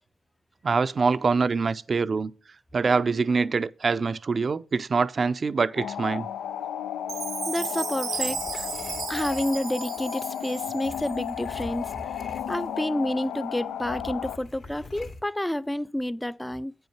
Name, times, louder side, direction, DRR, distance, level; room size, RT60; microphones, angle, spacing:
voice 1, 0.6-2.3 2.7-6.3, right 4 dB, 55° right, 0.5 m, -24 dB
sound 1, 5.8-14.4, left 9 dB, 85° left, 0.3 m, -34 dB
Chime, 7.1-11.3, right 6 dB, 75° right, 0.9 m, -35 dB
voice 2, 7.5-8.7 9.1-12.0 12.5-16.7, left 1 dB, 10° left, 0.5 m, -29 dB
sound 2, 8.1-10.0 10.8-13.0 13.2-13.4 13.8-15.2, left 2 dB, 70° left, 2.4 m, -44 dB
8.8 x 5.6 x 5.9 m
supercardioid pair, 45°, 0 cm